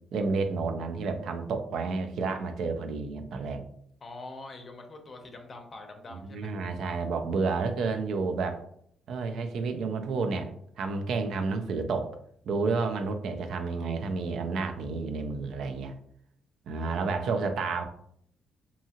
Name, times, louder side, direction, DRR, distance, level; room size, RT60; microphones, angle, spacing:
voice 1, 0.1-3.6 6.1-8.6 9.1-10.5 10.8-12.1 12.5-16.0 16.7-17.8, right 4 dB, 70° right, 7 dB, 0.3 m, -30 dB
voice 2, 4.0-6.6 16.9-17.5, left 2 dB, 40° left, 4 dB, 0.5 m, -45 dB
2.7 x 2.3 x 2.8 m, 0.67 s
cardioid pair, 90°, 0 cm